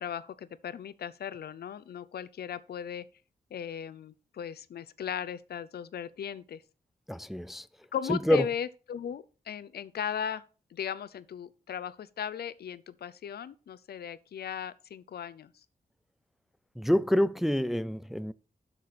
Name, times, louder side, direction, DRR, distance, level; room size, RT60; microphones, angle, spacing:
voice 1, 0.0-3.0 3.5-6.6 7.9-10.4 10.7-15.5, left 8 dB, 90° left, 0.6 m, -37 dB
voice 2, 7.1-7.7 8.1-8.4 16.8-18.3, equal, ahead, 0.3 m, -27 dB
8.3 x 6.7 x 4.2 m
wide cardioid pair, 125°, 16 cm